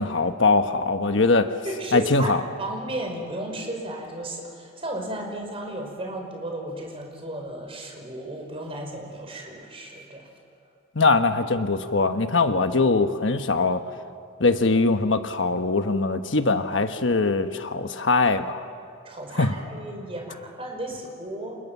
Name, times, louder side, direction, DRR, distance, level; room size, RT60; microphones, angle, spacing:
voice 1, 0.0-1.5 1.9-2.4 10.9-13.8 14.4-18.6 19.4-19.5, left 3 dB, 65° left, 7 dB, 1.2 m, -22 dB
voice 2, 1.6-10.3 19.0-21.6, right 1 dB, 30° right, 2 dB, 5.1 m, -34 dB
29.5 x 27.5 x 7.3 m, 2.4 s
head